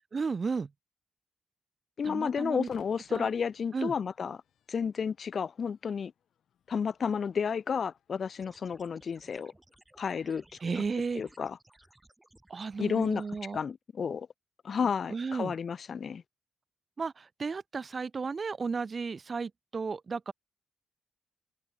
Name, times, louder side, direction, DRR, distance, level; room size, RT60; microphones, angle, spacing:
voice 1, 0.1-0.7 2.0-2.7 3.1-3.3 3.7-3.9 10.6-11.2 12.5-13.6 15.1-15.5 17.0-20.3, right 5 dB, 45° right, 1.2 m, -34 dB
voice 2, 2.0-4.4 4.7-6.1 6.7-9.5 10.0-10.4 11.2-11.6 12.8-13.2 13.5-14.3 14.6-16.2, left 6 dB, 60° left, 0.5 m, -31 dB
Crowd / Fireworks, 2.6-10.0, left 9 dB, 80° left, 4.3 m, -61 dB
sound 1, 8.4-13.4, right 1 dB, 15° right, 6.2 m, -61 dB
open air
cardioid pair, 70°, 0 cm